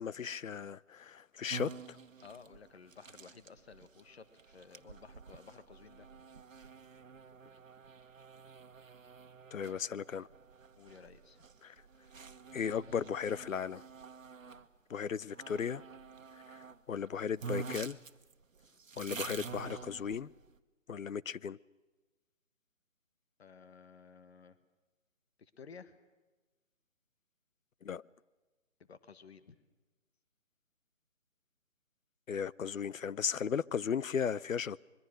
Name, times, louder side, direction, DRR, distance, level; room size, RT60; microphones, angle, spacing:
voice 1, 0.0-2.0 9.5-10.3 11.6-11.7 12.5-13.8 14.9-15.8 16.5-18.0 19.0-20.3 20.9-21.6 27.8-28.0 32.3-34.8, left 7 dB, 80° left, 0.7 m, -36 dB
sound 1, 1.5-14.7 15.3-16.8 17.1-17.2 17.4-20.5, right 5 dB, 75° right, 1.4 m, -48 dB
voice 2, 2.2-6.1 10.8-11.4 23.4-24.6 25.4-26.0 28.9-29.6, left 5 dB, 50° left, 1.6 m, -54 dB
25.0 x 22.5 x 6.4 m
figure-of-eight pair, 160°, 39 cm